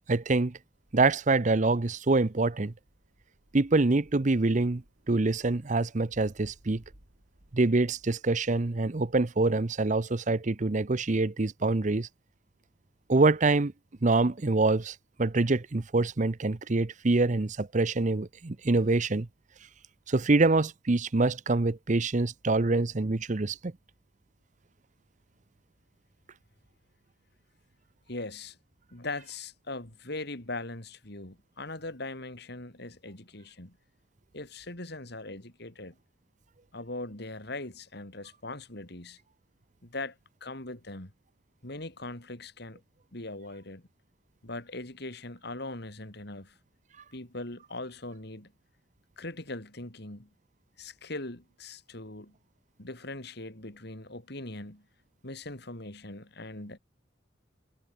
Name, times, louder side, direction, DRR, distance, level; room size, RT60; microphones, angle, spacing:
voice 1, 0.1-0.6 0.9-2.7 3.5-4.8 5.1-6.8 7.5-12.1 13.1-13.7 14.0-19.3 20.1-23.7, right 3 dB, 40° right, 0.7 m, -25 dB
sound 1, 0.7-8.8, equal, 85° right, 5.1 m, -61 dB
voice 2, 28.1-28.6 28.9-33.8 34.3-36.0 36.7-39.2 39.8-40.2 40.4-41.1 41.6-42.8 43.1-43.8 44.4-46.5 47.1-48.5 49.2-50.3 50.8-52.4 52.8-54.8 55.2-56.8, left 2 dB, 55° left, 3.5 m, -40 dB
head